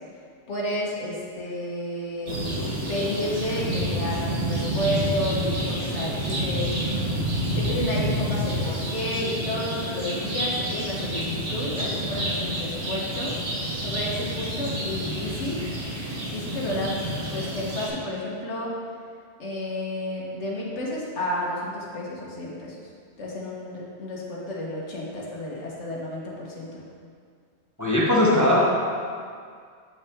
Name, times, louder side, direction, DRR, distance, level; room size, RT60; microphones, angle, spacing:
voice 1, 0.5-6.7 7.6-13.4 13.8-15.6 16.3-17.0 17.3-18.7 19.4-22.7 23.2-26.8, left 1 dB, 85° left, -4 dB, 1.5 m, -31 dB
sound 1, 2.3-17.9, equal, 85° right, 1.8 m, -29 dB
voice 2, 27.8-28.6, left 1 dB, 15° left, -5 dB, 0.8 m, -19 dB
8.1 x 5.9 x 3.5 m, 2.1 s
omnidirectional pair, 1.2 m